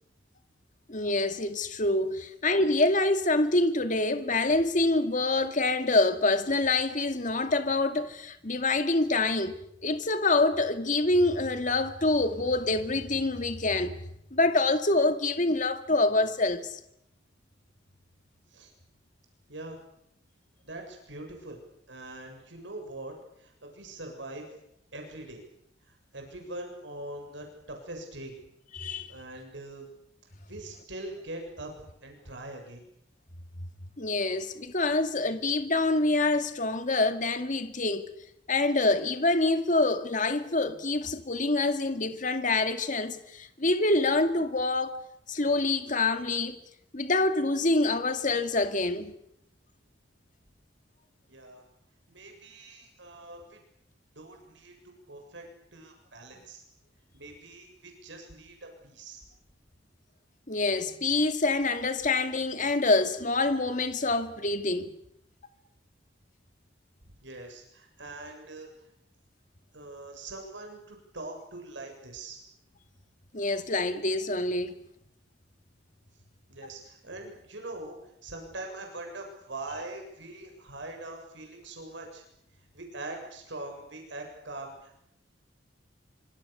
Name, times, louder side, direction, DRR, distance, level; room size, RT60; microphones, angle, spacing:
voice 1, 0.9-14.0 14.3-16.8 28.7-29.1 34.0-38.1 38.5-45.0 45.3-46.6 46.9-49.1 60.5-64.9 73.3-74.7, left 2 dB, 45° left, 2.2 m, -26 dB
voice 2, 19.5-19.8 20.6-21.6 21.9-24.5 24.9-25.4 25.8-28.3 29.1-29.9 30.5-31.7 32.0-32.9 51.3-51.6 52.1-53.6 54.2-54.7 55.1-55.4 55.7-56.6 57.1-59.2 67.2-68.7 69.7-72.4 76.5-82.2 82.7-85.0, right 2 dB, 75° right, 7.5 m, -42 dB
26.5 x 26.0 x 6.9 m
head